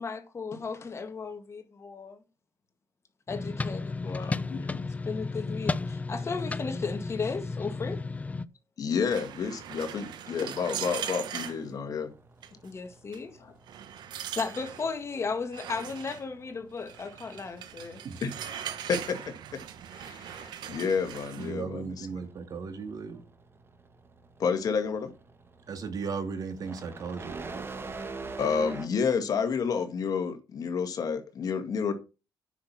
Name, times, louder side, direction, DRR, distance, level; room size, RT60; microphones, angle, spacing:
voice 1, 0.0-2.2 3.3-4.5 5.1-8.0 12.6-13.4 14.4-18.0, left 4 dB, 35° left, 1.8 m, -35 dB
sound 1, 3.3-8.4, left 3 dB, 20° left, 0.6 m, -33 dB
voice 2, 4.1-4.8 8.8-12.1 13.4-13.5 18.2-19.2 19.5-19.6 19.9-22.1 24.4-25.1 28.4-31.9, left 6 dB, 55° left, 2.0 m, -30 dB
sound 2, 9.1-11.6 12.4-12.7 13.1-13.2 13.7-14.9 15.5-16.2 16.9-21.5, right 10 dB, 75° right, 1.1 m, -40 dB
sound 3, 9.5-28.9, right 3 dB, 30° right, 1.7 m, -48 dB
voice 3, 21.4-23.2 25.7-27.6, right 5 dB, 55° right, 2.1 m, -36 dB
9.4 x 6.1 x 5.9 m
cardioid pair, 90°, 7 cm